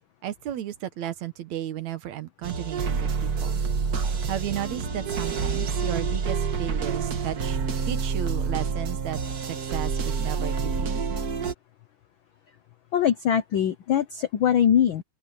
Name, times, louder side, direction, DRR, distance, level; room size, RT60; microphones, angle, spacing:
voice 1, 0.2-3.6 4.3-7.6 7.9-9.2 9.5-11.0, right 12 dB, 70° right, 2.5 m, -34 dB
sound 1, 2.4-11.5, right 5 dB, 45° right, 1.4 m, -28 dB
voice 2, 12.9-15.0, left 9 dB, 80° left, 1.1 m, -22 dB
open air
omnidirectional pair, 3.4 m